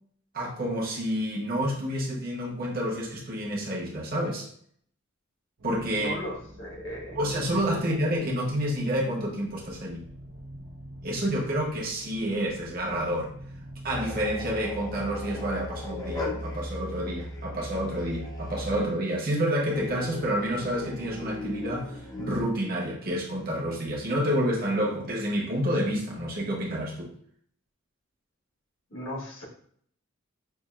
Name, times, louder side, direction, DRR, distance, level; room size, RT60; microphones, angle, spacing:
voice 1, 0.3-4.5 5.6-6.1 7.1-10.0 11.0-13.3 13.8-27.1, equal, 45° right, 1.0 m, -29 dB
sound 1, 5.6-16.2, equal, 85° right, 0.7 m, -47 dB
voice 2, 5.9-7.2 7.8-7.9 28.9-29.4, equal, 70° left, 1.5 m, -37 dB
sound 2, 13.9-19.0 19.7-22.4, left 1 dB, 20° left, 0.6 m, -37 dB
5.6 x 2.5 x 2.4 m
head